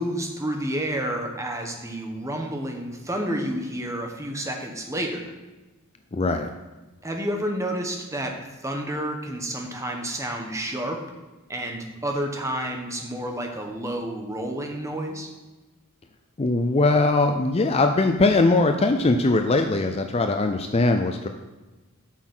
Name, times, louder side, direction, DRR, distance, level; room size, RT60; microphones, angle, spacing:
voice 1, 0.0-5.3 7.0-8.3 8.6-11.0 11.5-15.3, right 1 dB, 15° right, 2 dB, 1.1 m, -30 dB
voice 2, 6.1-6.5 16.4-21.3, left 2 dB, 25° left, 6 dB, 0.4 m, -21 dB
8.3 x 6.1 x 6.1 m, 1.2 s
head